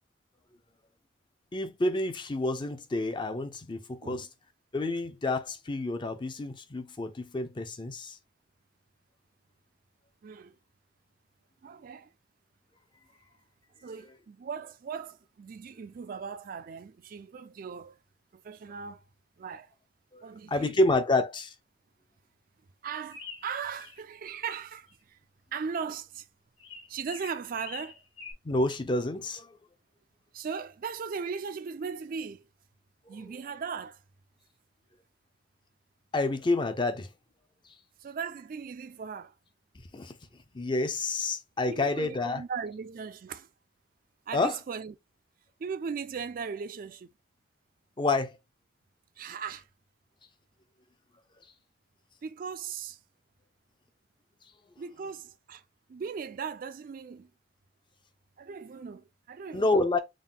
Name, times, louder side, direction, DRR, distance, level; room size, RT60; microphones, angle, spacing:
voice 1, 1.5-4.3 4.7-8.2 20.1-21.5 28.4-29.6 36.1-37.1 39.9-40.1 40.5-42.4 44.3-44.6 48.0-48.3 59.5-60.0, left 2 dB, 25° left, 0.5 m, -29 dB
voice 2, 10.2-10.5 11.6-12.1 13.8-18.0 18.4-19.0 19.4-19.7 20.2-20.8 22.8-25.2 25.5-26.3 26.9-28.0 30.3-32.5 33.1-34.0 38.0-39.3 41.7-43.5 44.3-44.9 45.6-47.1 49.2-49.7 52.2-53.0 54.8-55.6 55.9-57.3 58.4-60.0, right 6 dB, 45° right, 0.3 m, -38 dB
sound 1, 23.1-24.0 24.3-24.9 26.6-28.3, left 5 dB, 75° left, 1.4 m, -44 dB
3.7 x 2.2 x 3.7 m
head